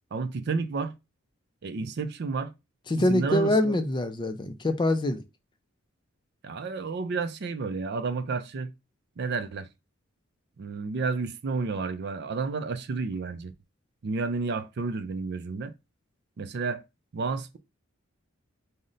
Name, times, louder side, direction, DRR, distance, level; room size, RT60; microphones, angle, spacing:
voice 1, 0.1-0.9 1.6-2.5 3.0-3.8 6.4-8.7 9.2-9.7 10.6-13.5 14.0-15.7 16.4-16.8 17.1-17.6, right 4 dB, 55° right, 0.4 m, -31 dB
voice 2, 2.9-5.2, left 1 dB, 20° left, 0.4 m, -25 dB
5.1 x 2.1 x 3.8 m
head